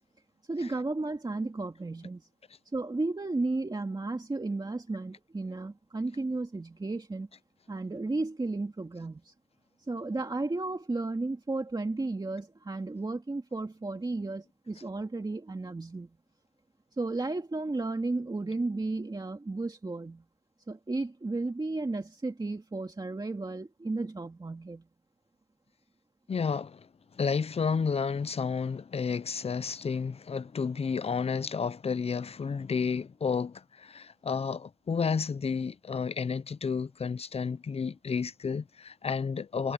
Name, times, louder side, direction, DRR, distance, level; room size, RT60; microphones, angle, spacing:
voice 1, 0.5-2.3 2.7-7.3 7.7-9.3 9.8-16.2 17.0-20.2 20.7-24.9, right 2 dB, 40° right, 2.2 m, -33 dB
voice 2, 26.3-26.9 27.2-39.7, left 5 dB, 70° left, 0.5 m, -31 dB
wide cardioid pair, 80°, 11 cm